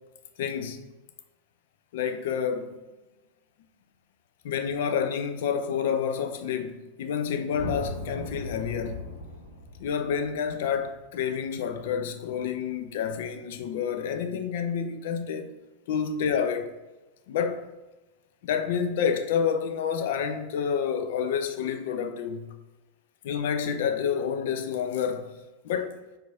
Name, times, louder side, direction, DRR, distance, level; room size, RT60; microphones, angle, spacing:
voice 1, 0.4-0.8 1.9-2.7 4.4-9.0 9.8-15.5 15.9-16.7 17.3-17.7 18.4-22.5 23.2-25.3 25.6-26.0, left 7 dB, 55° left, 0.4 m, -29 dB
sound 1, 7.5-11.9, left 1 dB, 80° left, 0.8 m, -38 dB
4.5 x 2.6 x 4.2 m
figure-of-eight pair, 90°, 0 cm